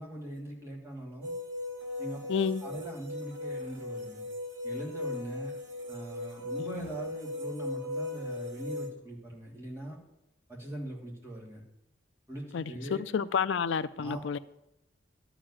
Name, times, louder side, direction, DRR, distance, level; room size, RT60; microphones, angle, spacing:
voice 1, 0.0-1.3 2.0-4.2 4.6-5.5 5.9-10.0 10.5-11.6 12.3-13.0 14.0-14.4, right 1 dB, 15° right, -3 dB, 2.9 m, -41 dB
sound 1, 1.2-8.9, left 2 dB, 65° right, 2.5 m, -38 dB
voice 2, 2.3-2.6 6.6-6.9 12.5-14.4, left 6 dB, 70° left, 15 dB, 0.4 m, -30 dB
12.5 x 5.1 x 8.5 m, 0.88 s
head